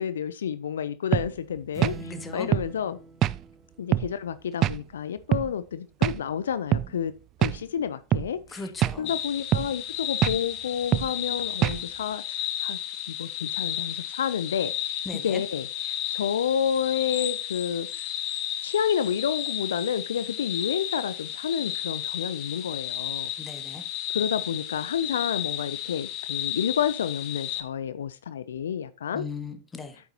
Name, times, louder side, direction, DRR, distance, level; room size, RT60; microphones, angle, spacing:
voice 1, 0.0-3.0 3.8-7.1 7.4-8.7 9.0-12.8 13.1-18.1 18.6-23.3 24.1-29.2, left 8 dB, 75° left, 0.4 m, -30 dB
sound 1, 1.1-1.3 1.8-2.0 2.5-2.7 3.2-3.4 3.9-4.1 4.6-4.8 5.3-5.5 6.0-6.2 6.7-6.9 7.4-7.6 8.1-8.3 8.8-9.0 9.5-9.7 10.2-10.4 10.9-11.1 11.6-11.8, right 13 dB, 40° right, 0.3 m, -23 dB
sound 2, 1.7-4.4, right 3 dB, 10° right, 1.3 m, -43 dB
voice 2, 2.0-2.5 8.5-9.1 15.0-15.4 23.4-23.8 29.1-29.9, left 4 dB, 15° left, 1.4 m, -37 dB
sound 3, 9.0-27.6, left 11 dB, 50° left, 1.1 m, -33 dB
8.9 x 7.0 x 2.8 m
hypercardioid pair, 95°, 0 cm